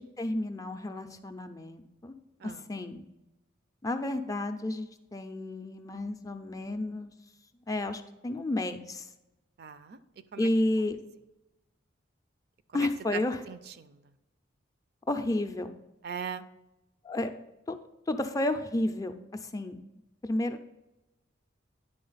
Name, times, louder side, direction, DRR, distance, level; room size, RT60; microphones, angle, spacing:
voice 1, 0.2-2.1 2.4-3.1 3.8-7.1 7.7-9.1 10.4-11.0 12.7-13.4 15.1-15.7 17.0-17.3 17.7-17.8 18.1-19.1 19.5-19.8 20.2-20.7, left 1 dB, 15° left, 7 dB, 0.4 m, -31 dB
voice 2, 9.6-10.0 10.3-10.5 12.7-13.2 13.5-14.0 16.0-16.4, right 7 dB, 55° right, 12 dB, 0.4 m, -39 dB
10.0 x 3.6 x 4.0 m, 0.96 s
head